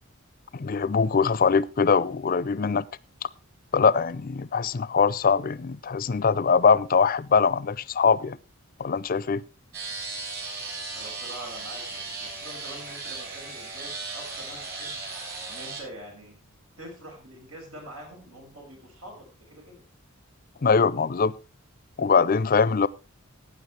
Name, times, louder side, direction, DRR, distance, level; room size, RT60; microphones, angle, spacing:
voice 1, 0.5-2.9 3.7-8.4 8.8-9.4 20.6-21.3 22.0-22.9, left 5 dB, 40° left, 0.5 m, -22 dB
sound 1, 9.7-15.8, right 3 dB, 50° right, 6.9 m, -36 dB
voice 2, 10.9-15.0 15.5-16.4 16.8-19.8 22.8-22.9, right 1 dB, 85° right, 5.9 m, -45 dB
15.5 x 9.6 x 3.2 m
head